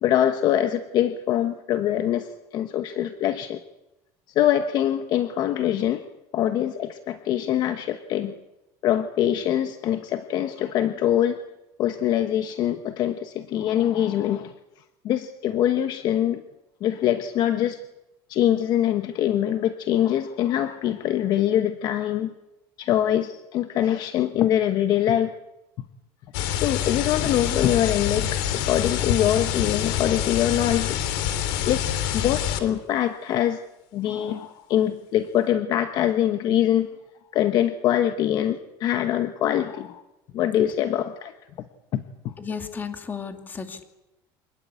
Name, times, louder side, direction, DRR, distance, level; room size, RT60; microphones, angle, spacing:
voice 1, 0.0-3.6 4.3-6.0 6.3-8.3 8.8-11.4 11.8-14.5 15.0-16.4 16.8-17.8 18.3-22.3 22.8-25.4 26.6-31.0 31.7-31.8 32.1-33.6 33.9-36.9 37.3-40.0 40.3-41.3 41.9-42.3, left 11 dB, 45° left, 9 dB, 1.1 m, -23 dB
sound 1, 26.3-32.6, left 10 dB, 85° left, 3.2 m, -26 dB
voice 2, 42.4-43.8, left 6 dB, 20° left, 6 dB, 2.5 m, -34 dB
26.0 x 19.5 x 8.3 m, 0.95 s
cardioid pair, 155°, 9 cm